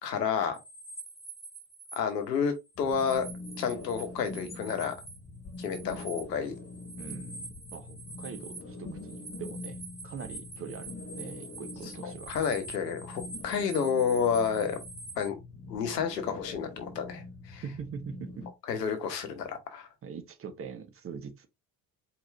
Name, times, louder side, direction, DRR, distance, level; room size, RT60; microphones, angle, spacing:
voice 1, 0.0-0.6 2.0-3.2 3.6-4.9 5.6-6.6 12.0-14.8 15.2-15.3 15.7-17.6 18.7-19.9, left 6 dB, 75° left, 1.0 m, -30 dB
sound 1, 0.5-2.0 2.3-5.2 5.5-15.3, right 3 dB, 10° left, 1.5 m, -46 dB
sound 2, 2.8-18.5, left 2 dB, 30° left, 1.5 m, -44 dB
voice 2, 7.0-12.3 17.6-18.5 20.0-21.5, right 6 dB, 25° right, 0.8 m, -43 dB
4.6 x 2.8 x 3.3 m
figure-of-eight pair, 55°, 49 cm